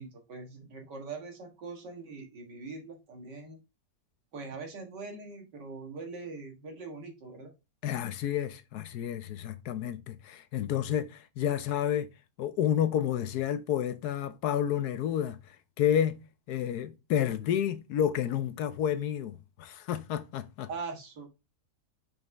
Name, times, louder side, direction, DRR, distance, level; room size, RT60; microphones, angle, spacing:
voice 1, 0.0-3.6 4.3-7.5 20.7-21.3, right 4 dB, 90° right, 2.2 m, -42 dB
voice 2, 7.8-12.1 12.4-15.4 15.8-16.2 16.5-20.7, left 10 dB, 70° left, 1.1 m, -30 dB
5.3 x 5.3 x 3.4 m
omnidirectional pair, 1.8 m